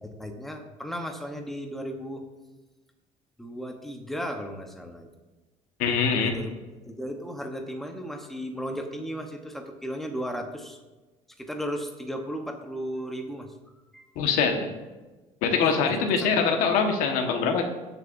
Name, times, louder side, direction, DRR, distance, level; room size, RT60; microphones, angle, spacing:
voice 1, 0.0-2.2 3.4-5.1 6.2-6.5 6.8-10.8 11.4-13.5 13.9-14.1 15.6-16.3, equal, ahead, 3 dB, 0.9 m, -35 dB
voice 2, 5.8-6.3 14.1-14.7 15.4-17.6, left 5 dB, 80° left, 4 dB, 1.4 m, -23 dB
19.5 x 6.8 x 2.6 m, 1.2 s
cardioid pair, 175°, 14 cm